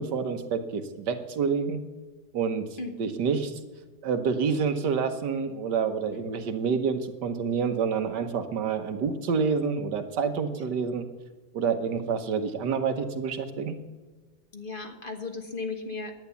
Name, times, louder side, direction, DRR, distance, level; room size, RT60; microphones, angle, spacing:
voice 1, 0.0-1.8 2.3-2.6 3.0-3.5 4.0-11.0 11.5-13.8, right 6 dB, 85° right, 7 dB, 1.6 m, -28 dB
voice 2, 2.8-3.1 6.1-6.3 10.5-10.6 14.5-16.1, left 3 dB, 35° left, 4 dB, 1.4 m, -36 dB
11.0 x 9.5 x 6.9 m, 1.3 s
omnidirectional pair, 1.8 m